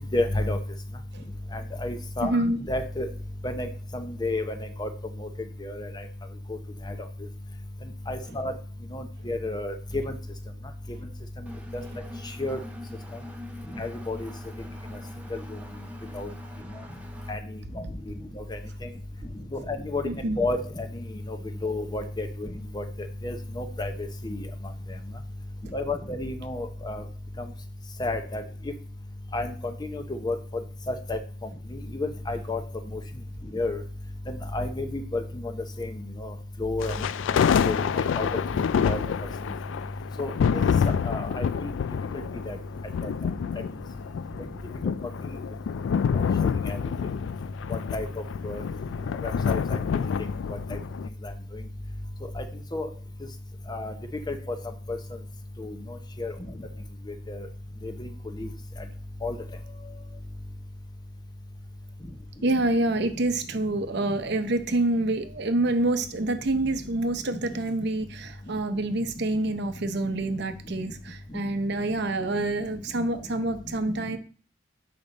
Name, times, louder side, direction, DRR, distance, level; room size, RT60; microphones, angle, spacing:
voice 1, 0.1-0.6 1.5-3.1 3.4-3.7 3.9-4.5 4.8-4.9 5.2-5.3 5.6-5.9 8.1-8.5 8.9-9.7 12.4-12.6 13.8-14.3 15.3-15.4 16.1-16.3 17.3-17.4 18.5-18.6 19.5-20.0 20.4-20.9 21.3-21.4 21.6-22.5 22.7-22.8 23.2-23.9 24.2-24.4 25.7-27.0 28.0-28.4 29.3-29.5 29.8-30.4 30.9-31.2 31.9-32.6 33.5-33.8 34.5-35.2 35.8-35.9 36.2-36.3 36.6-36.9 37.3-37.4 37.7-38.3 38.8-39.0 40.2-40.6 41.1-41.7 42.5-42.6 43.0-43.1 46.7-46.8 47.7-48.1 48.4-48.6 49.2-49.6 50.7-50.8 52.4-52.5 52.7-52.9 53.7-53.9 54.3-54.6 54.9-55.0 55.6-55.7 56.2-56.3 57.3-57.4 57.8-58.1 58.4-58.5 59.2-59.3, left 2 dB, 20° left, 7 dB, 0.6 m, -30 dB
voice 2, 2.2-2.6 20.0-20.4 62.4-74.2, right 2 dB, 60° right, 9 dB, 0.7 m, -27 dB
Engine, 11.5-17.3, left 1 dB, 5° right, 0.9 m, -44 dB
sound 1, 36.8-51.1, left 7 dB, 75° left, 0.3 m, -27 dB
7.1 x 5.2 x 4.0 m, 0.40 s
head